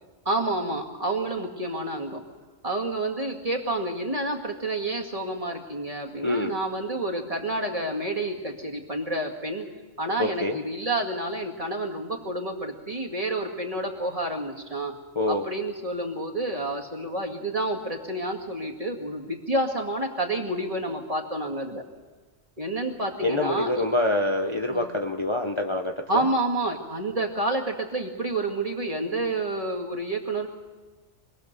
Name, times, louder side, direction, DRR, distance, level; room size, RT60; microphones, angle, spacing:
voice 1, 0.3-2.2 2.6-9.6 10.0-14.9 15.3-21.8 22.6-23.9 24.7-24.9 26.1-30.5, right 2 dB, 30° right, 1 dB, 2.3 m, -29 dB
voice 2, 6.2-6.5 10.2-10.6 15.1-15.4 23.2-26.2, left 2 dB, 25° left, 3 dB, 1.0 m, -26 dB
25.5 x 19.0 x 6.8 m, 1.3 s
omnidirectional pair, 1.3 m